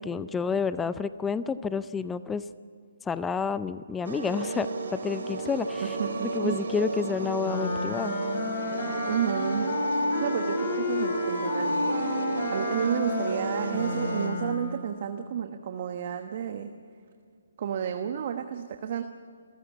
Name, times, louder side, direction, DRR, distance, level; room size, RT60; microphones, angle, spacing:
voice 1, 0.0-2.4 3.1-6.0 6.2-8.1, left 5 dB, 10° left, 14 dB, 0.5 m, -30 dB
sound 1, 4.0-14.3, right 3 dB, 65° right, 4.6 m, -33 dB
voice 2, 6.0-6.6 9.0-11.9 12.5-16.7 17.6-19.0, right 8 dB, 45° right, 6 dB, 1.2 m, -31 dB
Wind instrument woodwind instrument, 7.4-14.8, left 2 dB, 45° left, 5.3 m, -30 dB
28.0 x 14.5 x 8.3 m, 2.1 s
hypercardioid pair, 150°, 0 cm